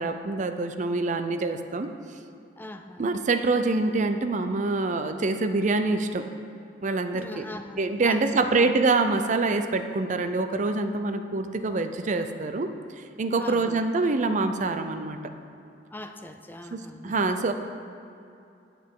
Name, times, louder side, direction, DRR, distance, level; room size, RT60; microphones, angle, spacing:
voice 1, 0.0-2.2 3.0-6.2 6.8-7.4 7.8-12.7 13.2-15.2 16.7-17.5, right 3 dB, 45° right, 8 dB, 0.5 m, -25 dB
voice 2, 2.6-3.1 7.1-8.7 13.4-13.8 15.9-17.2, left 1 dB, 10° left, 7 dB, 0.4 m, -41 dB
16.0 x 5.8 x 3.7 m, 2.6 s
head